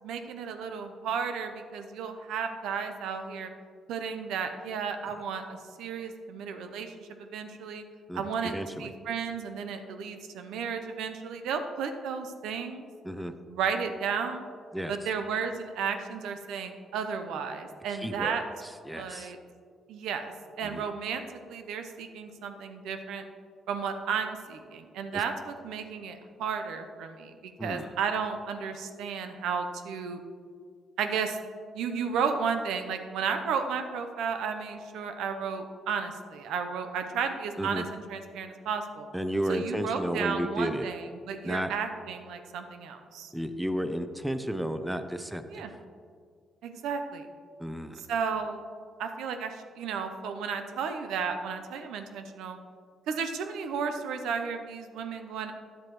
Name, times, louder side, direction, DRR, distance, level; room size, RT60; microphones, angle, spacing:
voice 1, 0.0-3.5 3.9-7.8 8.1-12.9 13.5-14.5 14.9-18.4 18.9-19.4 19.9-20.3 20.6-23.2 23.7-30.2 31.0-31.4 31.7-39.1 39.5-43.3 45.5-45.7 46.6-47.3 47.9-48.6 49.0-52.6 53.1-55.5, right 6 dB, 85° right, 7 dB, 0.7 m, -33 dB
voice 2, 8.1-8.9 13.0-13.3 14.7-14.9 18.0-18.4 18.9-19.3 20.6-20.9 25.1-25.2 27.6-27.9 37.6-37.8 39.1-40.9 41.4-41.7 43.3-45.6 47.6-48.0, equal, 5° right, 9 dB, 0.5 m, -32 dB
10.0 x 7.6 x 3.0 m, 2.1 s
cardioid pair, 90°, 0 cm